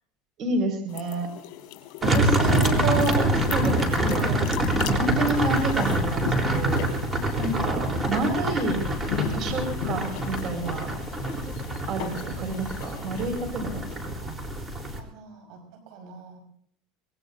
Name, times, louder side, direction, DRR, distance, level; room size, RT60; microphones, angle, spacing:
voice 1, 0.4-1.3 2.0-4.4 4.9-6.9 7.4-8.9 9.3-10.9 11.9-13.8, right 2 dB, 45° right, 6 dB, 5.3 m, -29 dB
sound 1, 0.9-14.0, left 11 dB, 65° left, 4.9 m, -38 dB
sound 2, 2.0-15.0, right 1 dB, 15° right, 3.7 m, -26 dB
voice 2, 2.6-3.1 7.9-8.3 14.2-14.4 14.9-16.4, right 4 dB, 65° right, 5 dB, 5.3 m, -44 dB
24.5 x 21.0 x 2.7 m, 0.65 s
supercardioid pair, 135°, 0 cm